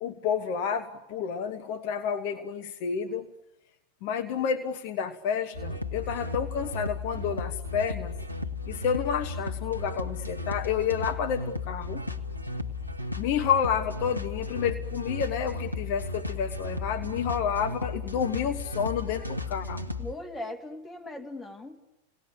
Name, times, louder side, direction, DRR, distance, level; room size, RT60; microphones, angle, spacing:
voice 1, 0.0-3.3 4.0-8.2 8.7-12.0 13.2-19.8, left 7 dB, 45° left, 7 dB, 1.3 m, -30 dB
sound 1, 5.5-20.1, left 3 dB, 85° left, 1.5 m, -35 dB
voice 2, 20.0-21.8, left 1 dB, 10° left, 2 dB, 3.0 m, -39 dB
28.5 x 19.5 x 8.7 m, 0.90 s
figure-of-eight pair, 90°, 0 cm